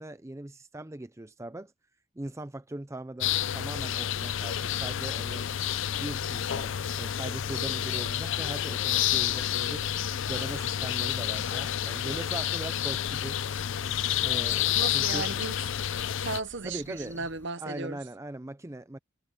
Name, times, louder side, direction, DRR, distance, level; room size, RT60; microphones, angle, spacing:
voice 1, 0.0-1.7 2.2-5.5 5.9-9.9 10.2-13.4 14.2-15.3 16.6-17.3 17.6-19.0, right 1 dB, 15° right, 0.5 m, -40 dB
sound 1, 3.2-16.4, left 10 dB, 65° left, 0.5 m, -29 dB
sound 2, 5.2-17.5, left 1 dB, 10° left, 4.6 m, -54 dB
voice 2, 14.7-15.6 16.2-18.0, right 3 dB, 60° right, 1.1 m, -35 dB
head